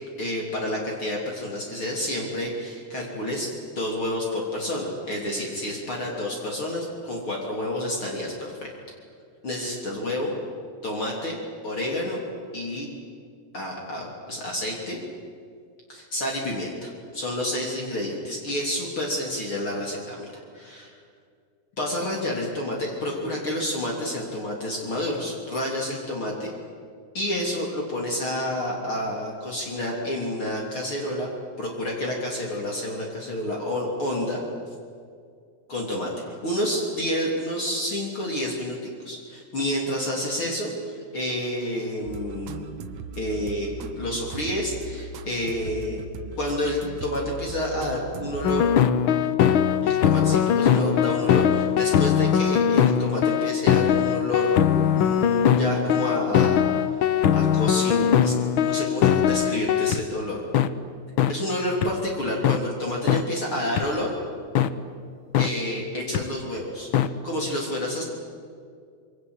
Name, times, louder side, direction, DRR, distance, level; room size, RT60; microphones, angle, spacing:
voice 1, 0.2-8.3 8.6-8.7 9.4-10.3 10.8-11.4 11.6-12.2 12.5-12.9 13.5-15.0 15.9-20.3 20.5-20.9 21.8-26.5 27.1-31.3 31.6-34.4 35.7-42.7 43.2-46.0 46.3-48.7 49.8-54.6 54.9-60.4 61.3-64.1 65.4-66.9 67.2-68.0, left 1 dB, 45° left, -1 dB, 4.1 m, -29 dB
sound 1, 42.1-48.8, right 4 dB, 65° right, 2.0 m, -38 dB
sound 2, 48.4-60.0 60.5-60.7 61.2-61.3 61.8-61.9 62.4-62.6 63.1-63.2 63.8-63.9 64.6-64.7 65.3-65.5 66.1-66.2 66.9-67.1, left 9 dB, 75° left, 1.2 m, -20 dB
27.0 x 24.0 x 8.2 m, 2.2 s
omnidirectional pair, 3.5 m